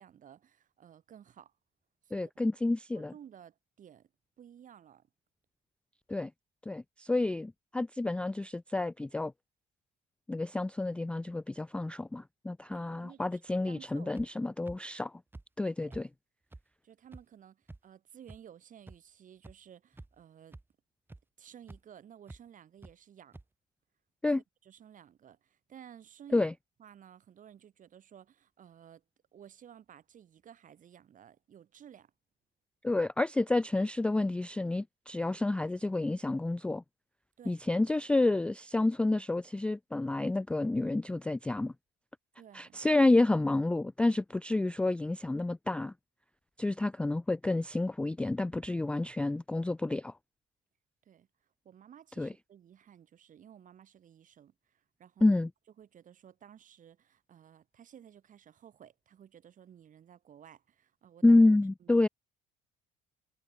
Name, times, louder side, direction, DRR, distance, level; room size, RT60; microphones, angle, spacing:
voice 1, 0.0-1.5 2.0-2.3 2.9-4.1 4.4-5.1 12.7-14.1 15.8-16.0 16.8-20.6 21.4-23.4 24.6-26.5 26.8-29.0 29.3-32.1 37.4-37.6 42.4-42.8 51.1-51.3 51.7-55.4 55.8-61.4 61.8-62.0, right 9 dB, 40° right, 6.8 m, -55 dB
voice 2, 2.1-3.1 6.1-6.3 6.7-9.3 10.3-15.2 15.6-16.1 24.2-24.4 26.3-26.5 32.8-36.8 37.5-41.7 42.5-45.9 46.6-50.2 52.2-52.3 55.2-55.5 61.2-62.1, left 2 dB, 5° left, 0.3 m, -29 dB
sound 1, 14.2-14.3 14.7-14.8 15.3-15.4 15.9-16.0 16.5-16.6 17.1-17.2 17.7-17.8 18.3-18.4 18.9-19.0 19.4-19.5 19.9-20.2 20.5-20.6 21.1-21.2 21.7-21.8 22.3-22.4 22.8-22.9 23.3-23.4, right 2 dB, 10° right, 7.2 m, -47 dB
cardioid pair, 135°, 20 cm